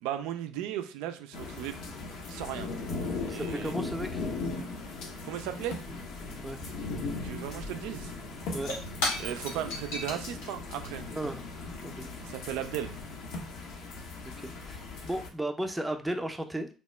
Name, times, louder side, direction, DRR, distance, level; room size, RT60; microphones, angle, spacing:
voice 1, 0.0-1.8 2.3-2.7 3.3-3.7 5.2-5.8 7.2-8.1 9.2-11.1 12.2-12.9, right 11 dB, 75° right, 8 dB, 0.3 m, -36 dB
sound 1, 1.3-15.3, left 3 dB, 70° left, 0.6 m, -38 dB
voice 2, 3.3-4.2 6.4-6.7 8.5-8.7 11.1-11.4 11.8-12.1 14.4-16.7, right 1 dB, 10° right, 5 dB, 0.5 m, -35 dB
Shatter / Crushing, 8.4-12.9, left 2 dB, 85° left, 1.1 m, -38 dB
2.8 x 2.1 x 3.2 m, 0.36 s
hypercardioid pair, 60°, 0 cm